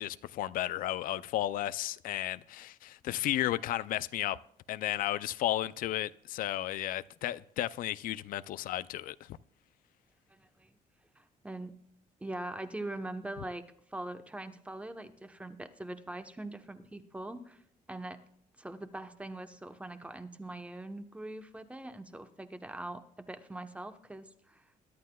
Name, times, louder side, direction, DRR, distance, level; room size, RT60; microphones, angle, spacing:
voice 1, 0.0-4.4 4.7-9.3, left 13 dB, 85° left, 0.4 m, -33 dB
voice 2, 10.3-10.7 11.2-11.7 12.2-13.6 13.9-17.6 17.9-18.2 18.6-24.6, right 1 dB, 10° right, 0.9 m, -42 dB
22.5 x 11.5 x 2.3 m
cardioid pair, 140°, 14 cm